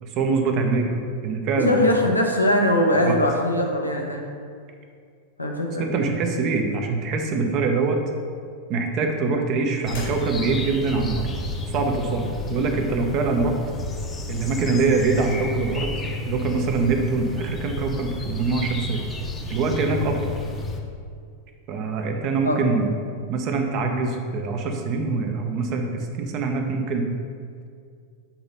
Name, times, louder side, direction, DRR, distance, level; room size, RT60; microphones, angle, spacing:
voice 1, 0.0-1.9 2.9-3.2 5.8-8.0 8.7-11.3 11.7-13.6 14.3-19.0 19.5-20.3 21.7-22.9 23.3-27.1, right 4 dB, 40° right, 4 dB, 0.9 m, -24 dB
voice 2, 1.6-4.2 5.4-5.9 20.0-20.1 22.4-22.7, left 1 dB, 80° left, 1 dB, 0.9 m, -21 dB
sound 1, 9.8-20.8, left 2 dB, 20° left, 0.9 m, -31 dB
sound 2, 9.9-10.9, left 3 dB, 60° left, 1.5 m, -43 dB
7.2 x 4.0 x 5.4 m, 2.2 s
figure-of-eight pair, 90°, 0 cm